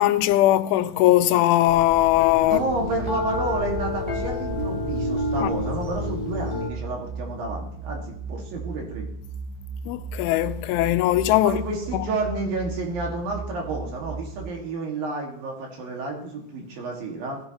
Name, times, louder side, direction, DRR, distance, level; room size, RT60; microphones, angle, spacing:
voice 1, 0.0-2.6 5.4-5.5 9.9-11.6 11.9-12.0, left 15 dB, 90° left, 3.1 m, -20 dB
sound 1, 1.7-6.7, left 2 dB, 10° left, 1.8 m, -29 dB
voice 2, 2.4-9.1 11.4-17.4, right 2 dB, 55° right, 3.4 m, -30 dB
sound 2, 2.7-14.5, right 4 dB, 85° right, 2.2 m, -36 dB
17.5 x 15.5 x 3.0 m
omnidirectional pair, 5.4 m